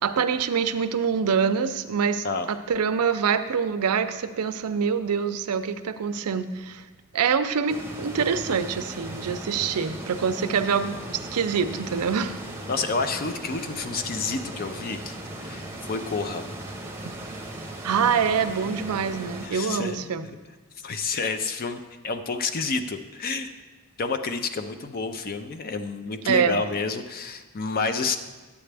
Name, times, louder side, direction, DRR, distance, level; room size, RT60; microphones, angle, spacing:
voice 1, 0.0-6.8 7.1-11.0 11.3-12.4 17.8-20.2 26.3-26.6, right 6 dB, 85° right, 10 dB, 0.5 m, -25 dB
sound 1, 7.7-19.5, right 1 dB, 10° right, 0.8 m, -38 dB
voice 2, 12.7-16.5 19.4-20.1 20.8-23.5 24.0-28.2, left 4 dB, 40° left, 9 dB, 0.5 m, -29 dB
9.9 x 8.2 x 3.4 m, 1.3 s
head